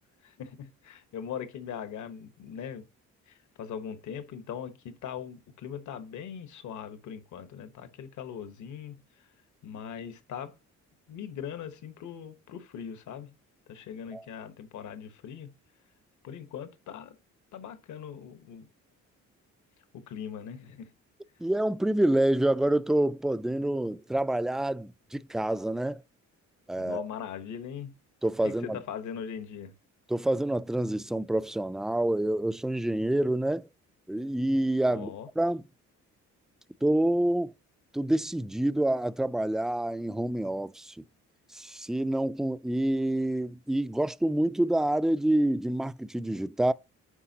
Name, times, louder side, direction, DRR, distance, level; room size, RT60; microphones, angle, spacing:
voice 1, 0.2-2.9 3.2-9.3 9.6-10.5 11.1-13.3 13.7-15.5 16.2-17.2 17.5-18.7 19.9-20.9 26.8-27.9 28.4-29.8 34.9-35.3, left 8 dB, 75° left, 1.2 m, -40 dB
voice 2, 21.4-26.0 26.7-27.1 28.2-28.8 30.1-33.7 34.1-35.1 35.4-35.6 36.8-37.5 37.9-41.0 41.5-46.7, right 1 dB, ahead, 0.3 m, -27 dB
9.8 x 5.7 x 2.8 m
cardioid pair, 90°, 30 cm